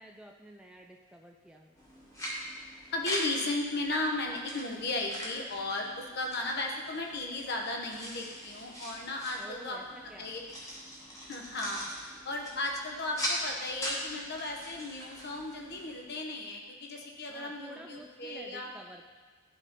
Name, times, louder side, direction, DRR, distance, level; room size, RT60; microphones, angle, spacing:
voice 1, 0.0-1.8 9.4-10.3 17.3-19.1, equal, 5° right, 1 dB, 0.3 m, -50 dB
sound 1, 1.8-16.0, equal, 15° left, 1.1 m, -42 dB
voice 2, 2.9-9.8 10.2-10.4 11.3-18.7, left 2 dB, 50° left, 1 dB, 0.9 m, -35 dB
11.5 x 4.1 x 3.6 m, 1.4 s
head